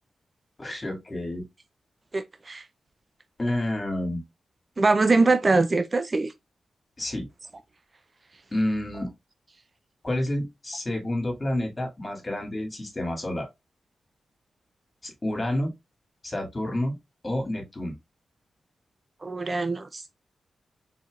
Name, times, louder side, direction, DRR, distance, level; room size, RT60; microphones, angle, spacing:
voice 1, 0.6-1.5 3.4-4.2 7.0-7.3 8.5-9.1 10.0-13.5 15.0-15.7 16.2-17.0 17.2-18.0, left 1 dB, 30° left, 2.3 m, -29 dB
voice 2, 2.1-2.6 4.8-6.3 19.2-20.1, right 3 dB, 40° right, 0.4 m, -23 dB
4.3 x 4.1 x 2.4 m
cardioid pair, 60°, 0 cm